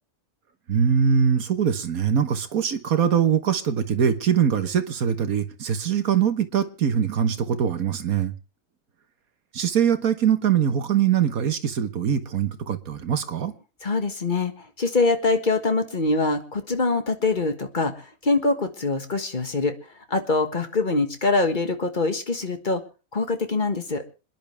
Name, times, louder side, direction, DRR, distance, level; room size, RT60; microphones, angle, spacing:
voice 1, 0.7-8.3 9.5-13.5, right 8 dB, 65° right, 1.7 m, -22 dB
voice 2, 13.8-19.7 20.1-22.8 23.1-24.0, left 3 dB, 30° left, 1.7 m, -24 dB
27.0 x 10.5 x 3.4 m
omnidirectional pair, 1.6 m